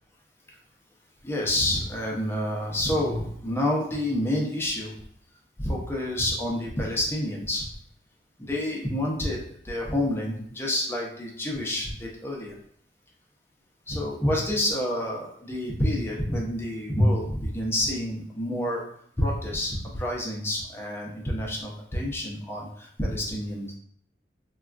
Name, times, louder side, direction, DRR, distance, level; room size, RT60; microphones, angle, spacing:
voice 1, 1.2-4.9 5.6-7.7 8.5-12.5 13.9-18.8 19.2-23.7, left 1 dB, 15° left, -2 dB, 0.5 m, -28 dB
3.4 x 2.2 x 2.4 m, 0.64 s
head